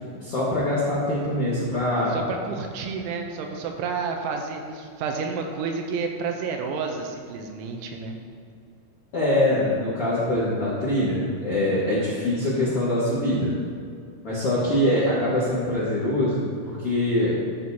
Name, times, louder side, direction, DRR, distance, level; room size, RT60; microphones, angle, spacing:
voice 1, 0.2-2.2 9.1-13.5 14.2-17.3, left 1 dB, 65° left, -10 dB, 1.4 m, -23 dB
voice 2, 2.1-8.2, right 5 dB, 80° right, 3 dB, 3.1 m, -30 dB
14.0 x 6.2 x 2.8 m, 2.3 s
omnidirectional pair, 5.5 m